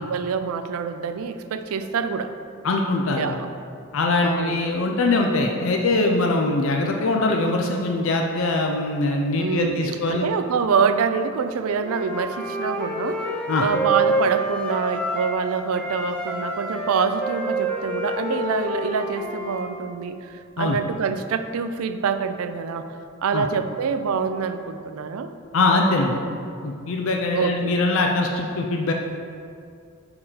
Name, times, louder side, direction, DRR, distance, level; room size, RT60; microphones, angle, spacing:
voice 1, 0.0-2.4 3.2-3.5 4.2-4.6 9.4-22.9 23.2-25.3 27.3-27.8, right 5 dB, 75° right, 9 dB, 0.4 m, -26 dB
voice 2, 2.6-3.4 3.9-10.3 13.5-13.7 20.6-20.8 23.3-23.5 25.5-26.2 26.6-28.9, left 2 dB, 60° left, 1 dB, 0.5 m, -22 dB
Wind instrument woodwind instrument, 11.8-15.4 15.7-19.7, right 1 dB, 5° left, 0.6 m, -27 dB
4.9 x 4.8 x 5.5 m, 2.3 s
head